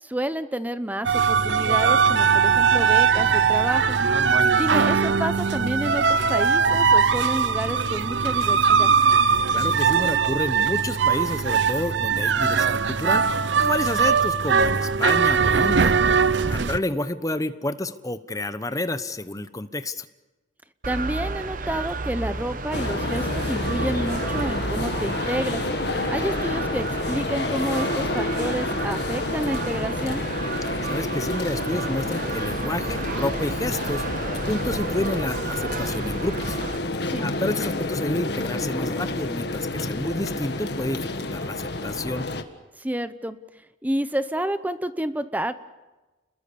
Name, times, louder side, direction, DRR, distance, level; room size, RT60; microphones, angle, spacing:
voice 1, 0.0-4.0 4.5-8.9 16.6-16.7 20.9-25.6 26.1-30.2 37.1-37.2 42.8-43.4 43.8-45.5, right 1 dB, 10° right, 12 dB, 0.8 m, -29 dB
sound 1, 1.0-16.8, right 6 dB, 70° right, 0.7 m, -20 dB
voice 2, 9.5-16.0 16.5-20.1 30.8-36.6 37.2-42.3, left 1 dB, 20° left, 12 dB, 1.0 m, -29 dB
sound 2, 20.8-36.8, right 3 dB, 45° right, 1.1 m, -32 dB
sound 3, 22.7-42.4, left 2 dB, 60° left, 1.7 m, -29 dB
30.0 x 21.5 x 6.9 m, 1.2 s
head